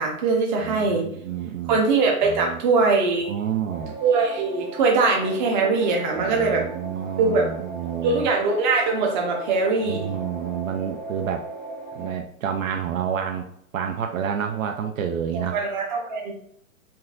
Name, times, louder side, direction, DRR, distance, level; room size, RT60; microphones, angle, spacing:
voice 1, 0.0-1.1 1.7-3.3 4.0-6.7 7.2-7.5 8.0-10.1 15.3-16.3, right 4 dB, 35° right, 1 dB, 0.8 m, -22 dB
voice 2, 0.6-1.8 2.2-2.6 3.3-3.9 6.1-8.2 9.9-11.5 11.9-15.6, right 8 dB, 70° right, 4 dB, 0.5 m, -29 dB
sound 1, 3.7-12.1, right 2 dB, 5° right, 0.5 m, -38 dB
3.9 x 2.7 x 2.4 m, 0.70 s
hypercardioid pair, 145°, 42 cm